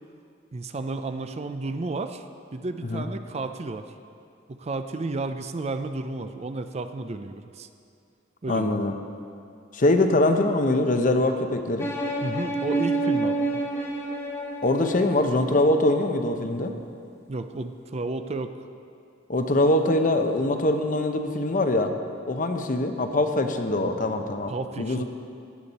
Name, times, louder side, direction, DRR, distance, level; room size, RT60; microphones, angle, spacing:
voice 1, 0.5-2.2 2.5-3.8 4.5-7.7 8.4-8.7 12.2-13.6 17.3-18.5 24.5-25.0, right 3 dB, 35° right, 8 dB, 0.5 m, -32 dB
voice 2, 8.5-8.9 9.7-11.9 14.6-16.7 19.3-21.9 22.3-25.0, left 2 dB, 45° left, 6 dB, 0.8 m, -23 dB
sound 1, 11.8-15.7, right 2 dB, 15° left, 1.2 m, -28 dB
16.5 x 9.7 x 4.2 m, 2.4 s
head